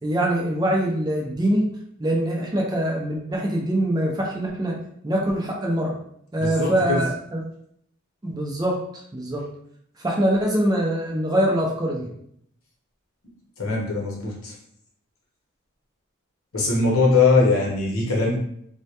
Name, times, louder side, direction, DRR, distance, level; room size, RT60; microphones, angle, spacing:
voice 1, 0.0-1.7 2.0-4.8 5.0-5.9 6.3-7.4 8.2-8.8 9.1-9.5 10.0-12.1, right 1 dB, 20° right, -2 dB, 0.4 m, -23 dB
voice 2, 6.4-7.0 13.6-14.6 16.5-18.3, left 3 dB, 85° left, -3 dB, 0.8 m, -21 dB
2.1 x 2.1 x 2.7 m, 0.69 s
head